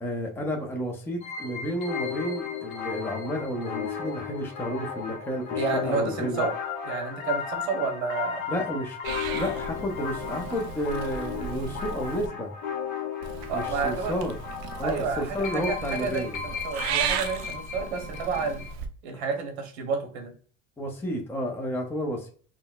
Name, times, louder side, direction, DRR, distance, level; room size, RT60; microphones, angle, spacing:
voice 1, 0.0-6.5 8.5-9.0 9.3-12.5 13.5-14.4 14.8-16.4 19.1-19.2 20.8-22.3, equal, 5° left, 1 dB, 0.5 m, -31 dB
sound 1, 1.2-18.7, left 7 dB, 60° left, 0.9 m, -35 dB
voice 2, 5.6-6.5 6.8-8.4 13.5-14.1 14.8-18.6 19.0-20.3, right 5 dB, 90° right, 4 dB, 1.0 m, -30 dB
Purr / Meow, 9.0-12.3 13.2-18.9, right 7 dB, 70° right, 0.5 m, -35 dB
3.8 x 2.1 x 2.3 m, 0.44 s
supercardioid pair, 115°, 32 cm